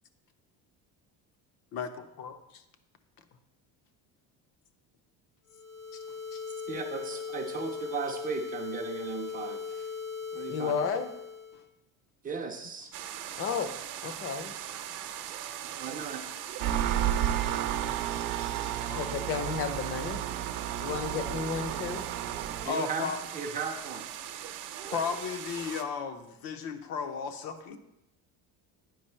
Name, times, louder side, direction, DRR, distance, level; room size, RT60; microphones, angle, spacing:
voice 1, 1.7-2.4 6.3-6.4 18.8-19.1 22.6-23.2 24.9-27.8, left 6 dB, 70° left, 8 dB, 0.8 m, -35 dB
sound 1, 5.5-11.6, left 5 dB, 90° left, 3.4 m, -39 dB
voice 2, 6.7-9.9 10.3-10.8 12.2-12.9 15.6-16.3 20.3-20.4 22.6-24.0, right 5 dB, 25° right, 3 dB, 0.4 m, -36 dB
voice 3, 10.5-11.1 13.4-13.7 14.0-14.5 18.9-20.3 20.8-22.0, left 6 dB, 35° left, 9 dB, 0.6 m, -32 dB
sound 2, 12.9-25.8, right 10 dB, 55° right, 0.7 m, -41 dB
Engine, 16.6-22.7, right 11 dB, 90° right, 0.6 m, -32 dB
9.3 x 5.2 x 4.3 m, 0.88 s
cardioid pair, 180°, 38 cm